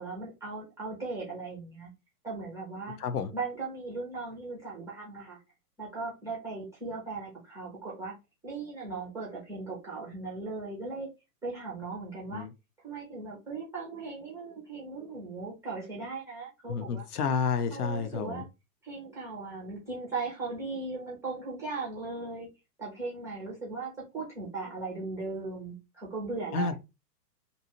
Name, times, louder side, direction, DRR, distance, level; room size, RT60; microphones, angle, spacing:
voice 1, 0.0-1.9 2.2-3.0 3.3-5.4 5.8-8.1 8.4-11.1 11.4-12.5 12.8-17.1 17.7-18.5 18.8-22.5 22.8-26.7, right 3 dB, 5° right, 0.5 m, -38 dB
voice 2, 3.0-3.3 12.3-12.5 16.7-18.4 26.5-26.7, left 5 dB, 65° left, 0.7 m, -30 dB
2.7 x 2.2 x 2.9 m
hypercardioid pair, 120°, 50 cm